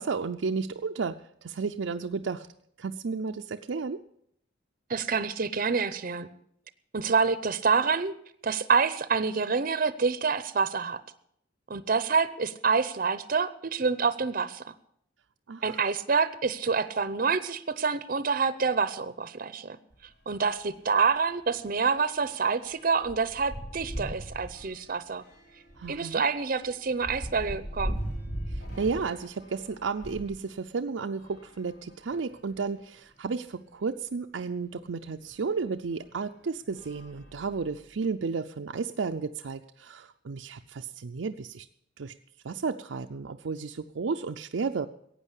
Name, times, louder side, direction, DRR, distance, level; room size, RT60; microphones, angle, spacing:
voice 1, 0.0-2.5 2.8-4.0 15.5-15.8 25.8-26.2 28.5-41.7 42.0-42.1 42.4-44.9, right 4 dB, 80° right, 5 dB, 0.5 m, -33 dB
voice 2, 4.9-6.3 6.9-8.1 8.4-11.0 11.7-14.6 15.6-19.8 20.3-25.2 25.9-28.0, right 5 dB, 45° right, 14 dB, 0.7 m, -27 dB
sound 1, 19.9-20.1 20.5-20.6 20.9-30.4 31.1-32.4 33.1-33.2 33.5-33.6 35.3-35.4 36.0-36.2 36.7-37.9, equal, 55° left, 3.4 m, -40 dB
15.5 x 9.0 x 8.2 m, 0.71 s
head